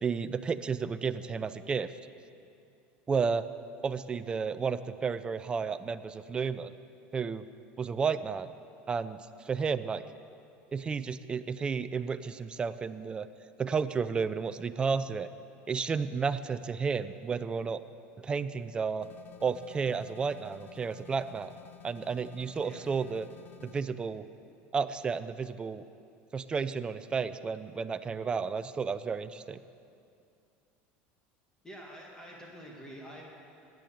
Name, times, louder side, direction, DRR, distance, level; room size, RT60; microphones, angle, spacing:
voice 1, 0.0-1.9 3.1-3.5 3.8-6.7 7.1-7.4 7.8-8.5 8.9-9.2 9.4-10.0 10.7-13.3 13.6-15.3 15.7-17.8 18.2-19.1 19.4-21.5 21.8-23.3 23.6-24.2 24.7-25.8 26.3-29.6, right 5 dB, 20° right, 12 dB, 0.4 m, -32 dB
sound 1, 19.0-23.9, left 12 dB, 45° left, 1.0 m, -53 dB
voice 2, 31.6-33.2, equal, 10° left, -2 dB, 1.8 m, -47 dB
15.0 x 9.2 x 7.0 m, 2.5 s
supercardioid pair, 140°, 5 cm